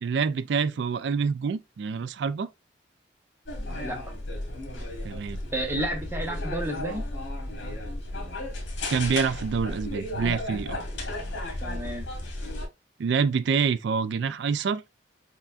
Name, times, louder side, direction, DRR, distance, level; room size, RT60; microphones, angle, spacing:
voice 1, 0.0-2.5 5.0-5.4 8.9-10.8 13.0-14.8, right 5 dB, 65° right, 0.3 m, -26 dB
sound 1, 3.5-12.7, left 1 dB, 80° left, 1.4 m, -34 dB
voice 2, 3.7-4.1 5.5-7.1 11.6-12.1, right 1 dB, 10° right, 0.8 m, -31 dB
5.5 x 2.5 x 2.3 m
head